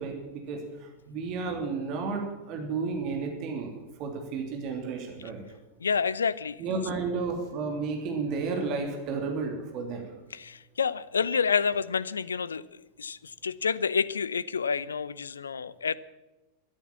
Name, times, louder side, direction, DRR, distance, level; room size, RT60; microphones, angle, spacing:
voice 1, 0.0-3.7 4.0-5.4 6.6-10.1, right 4 dB, 40° right, 3 dB, 3.0 m, -32 dB
voice 2, 5.8-6.6 10.3-12.6 13.0-15.9, left 6 dB, 70° left, 19 dB, 0.6 m, -28 dB
13.0 x 11.5 x 7.3 m, 1.1 s
figure-of-eight pair, 90°, 0 cm